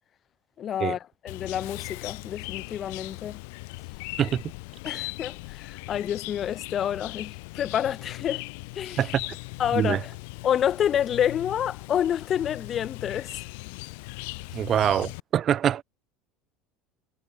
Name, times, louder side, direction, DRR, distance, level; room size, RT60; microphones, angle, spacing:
voice 1, 0.6-1.0 1.2-3.4 4.8-8.4 8.7-9.0 9.6-10.1 10.4-13.4, left 9 dB, 25° left, 1.2 m, -28 dB
Chirp tweet, 1.3-15.2, left 29 dB, 70° left, 1.7 m, -39 dB
voice 2, 14.5-15.8, right 10 dB, 25° right, 0.3 m, -24 dB
cardioid pair, 175°, 0 cm